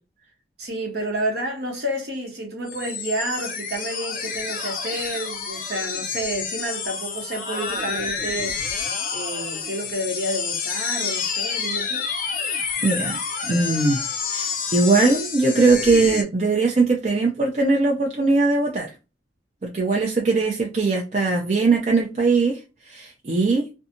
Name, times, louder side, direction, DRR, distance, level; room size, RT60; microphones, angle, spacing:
voice 1, 0.6-8.6 9.1-12.0, right 1 dB, 60° right, 1.0 m, -30 dB
sound 1, 2.7-16.2, left 5 dB, 45° left, 0.6 m, -29 dB
voice 2, 12.5-14.0 14.3-18.9 19.6-22.6 22.9-23.7, right 3 dB, 40° right, 0.5 m, -20 dB
2.6 x 2.3 x 2.6 m
head